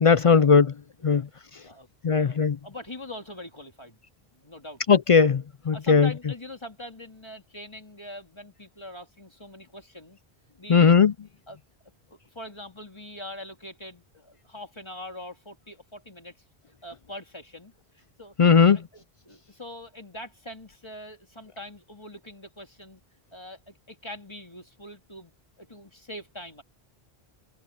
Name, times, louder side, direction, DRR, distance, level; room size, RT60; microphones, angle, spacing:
voice 1, 0.0-0.7 1.0-1.2 2.0-2.6 4.9-6.1 10.7-11.1 18.4-18.8, left 6 dB, 50° left, 0.4 m, -18 dB
voice 2, 2.2-4.0 4.3-4.8 5.7-10.2 10.6-11.0 11.5-11.6 12.1-16.3 16.8-23.0 23.3-25.3 25.6-26.6, left 1 dB, 25° left, 2.5 m, -43 dB
omnidirectional pair, 1.1 m